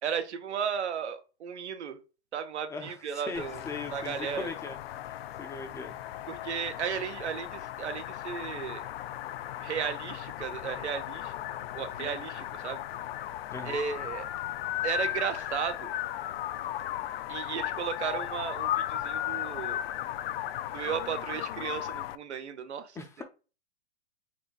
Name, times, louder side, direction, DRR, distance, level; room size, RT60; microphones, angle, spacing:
voice 1, 0.0-2.0 2.3-3.6 3.9-4.5 6.3-8.9 9.6-11.3 11.7-12.8 13.6-14.3 14.8-15.9 17.3-19.8 20.7-23.2, right 7 dB, 90° right, 0.9 m, -35 dB
voice 2, 2.7-4.8 5.4-5.9 13.5-13.8 23.0-23.2, left 4 dB, 10° left, 0.4 m, -39 dB
sound 1, 3.3-22.1, left 12 dB, 65° left, 0.5 m, -36 dB
4.3 x 2.7 x 4.6 m
hypercardioid pair, 130°, 33 cm